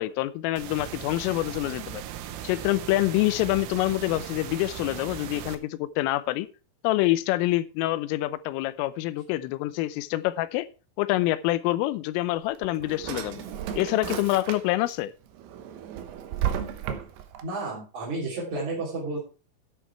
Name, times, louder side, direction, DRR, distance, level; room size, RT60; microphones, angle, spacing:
voice 1, 0.0-2.0 2.4-6.5 6.8-10.7 11.0-13.4 13.8-15.1, left 17 dB, 90° left, 3.3 m, -26 dB
sound 1, 0.6-5.6, right 11 dB, 85° right, 3.6 m, -38 dB
Drawer open or close, 12.4-14.9 15.4-17.4, right 9 dB, 70° right, 2.6 m, -33 dB
voice 2, 17.4-19.2, right 2 dB, 40° right, 3.9 m, -32 dB
10.5 x 8.4 x 4.5 m
omnidirectional pair, 5.7 m